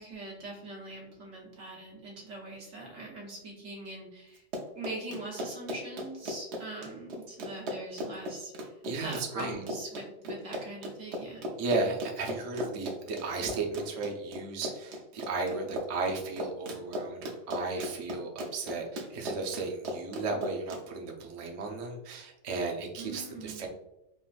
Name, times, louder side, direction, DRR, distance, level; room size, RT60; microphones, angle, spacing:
voice 1, 0.0-4.4 4.7-8.7 9.0-11.5 23.0-23.7, right 2 dB, 85° right, -3 dB, 1.4 m, -42 dB
Run, 4.4-20.8, equal, 65° right, 0.8 m, -37 dB
voice 2, 8.8-9.6 11.6-23.7, right 3 dB, 50° right, 0 dB, 0.4 m, -35 dB
3.7 x 2.4 x 2.3 m, 0.88 s
omnidirectional pair, 1.3 m